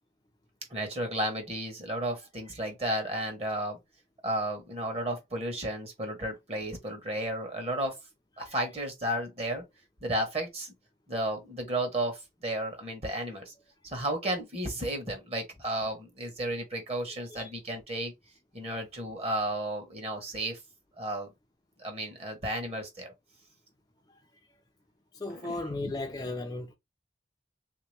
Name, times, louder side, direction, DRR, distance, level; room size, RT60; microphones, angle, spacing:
voice 1, 0.7-3.8 4.2-8.0 8.4-9.6 10.0-10.7 11.1-13.5 13.8-18.1 18.5-20.6 21.0-21.3 21.8-23.1 25.3-25.9, right 1 dB, 35° right, 1.3 m, -33 dB
voice 2, 25.1-26.7, left 2 dB, 20° left, 0.4 m, -35 dB
3.3 x 2.9 x 3.2 m
head